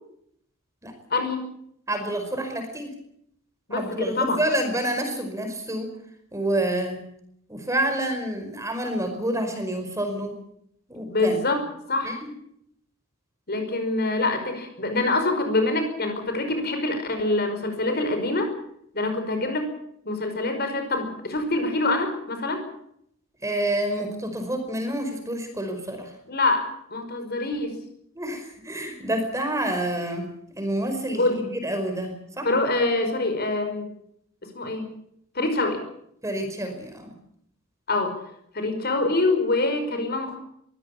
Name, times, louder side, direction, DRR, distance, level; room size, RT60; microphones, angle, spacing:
voice 1, 1.1-1.5 3.7-4.4 11.1-11.6 11.9-12.1 13.5-18.5 18.9-19.7 20.0-22.6 26.3-27.8 31.2-31.4 32.4-33.9 34.5-34.9 35.3-35.8 37.9-38.1 38.5-40.4, left 2 dB, 50° left, 6 dB, 5.2 m, -25 dB
voice 2, 1.9-2.9 3.7-5.9 6.3-7.0 7.5-10.3 10.9-11.4 12.0-12.3 23.4-26.1 28.1-30.3 30.6-32.5 36.2-37.1, right 1 dB, 15° right, 6 dB, 5.1 m, -28 dB
23.0 x 16.0 x 8.6 m, 0.71 s
head